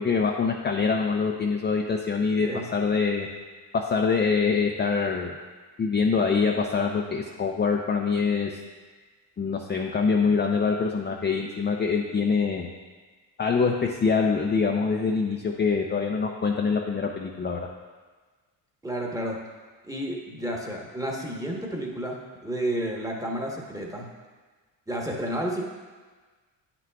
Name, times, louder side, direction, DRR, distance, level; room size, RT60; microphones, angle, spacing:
voice 1, 0.0-3.3 3.7-5.3 5.8-8.6 9.4-12.7 13.4-17.6, left 5 dB, 25° left, 0 dB, 0.5 m, -24 dB
voice 2, 18.8-19.4 19.8-24.1 24.9-25.6, right 1 dB, 5° right, -1 dB, 1.1 m, -31 dB
9.2 x 6.0 x 2.3 m, 1.4 s
cardioid pair, 80°, 46 cm